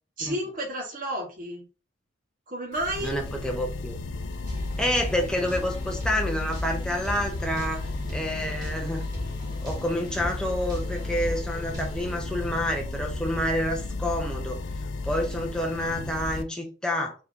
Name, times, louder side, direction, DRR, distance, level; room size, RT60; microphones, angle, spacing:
voice 1, 0.2-1.6 2.5-3.1, right 1 dB, 45° right, -1 dB, 1.7 m, -31 dB
sound 1, 2.7-16.4, left 2 dB, 80° left, 0.5 m, -33 dB
voice 2, 3.0-4.0 4.8-9.0 9.6-14.6 15.0-17.1, equal, 5° left, 1 dB, 0.9 m, -28 dB
sound 2, 4.4-12.1, equal, 20° right, 1.8 m, -39 dB
4.7 x 3.3 x 2.9 m, 0.33 s
head